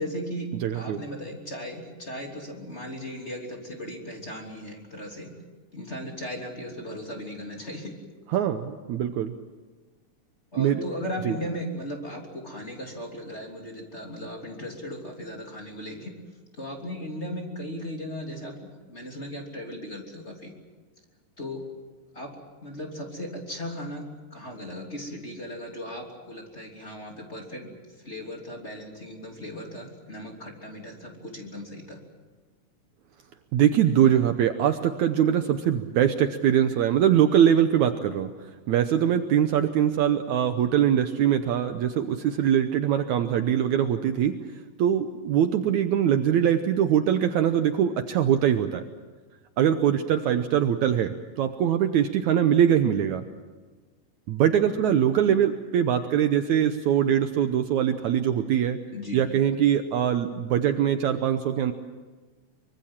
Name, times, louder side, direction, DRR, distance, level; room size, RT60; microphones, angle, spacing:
voice 1, 0.0-0.5 0.7-5.3 5.7-8.0 10.5-16.1 16.5-20.5 21.4-21.6 22.1-22.3 22.6-27.7 28.0-32.0 58.9-59.2, equal, 20° left, 1 dB, 3.1 m, -37 dB
voice 2, 0.6-1.0 8.3-9.3 10.6-10.8 11.3-11.4 33.5-38.3 38.7-44.4 44.8-48.8 49.6-53.2 54.3-58.8 59.1-61.7, right 9 dB, 70° right, 8 dB, 2.0 m, -22 dB
24.5 x 24.0 x 7.4 m, 1.3 s
omnidirectional pair, 3.9 m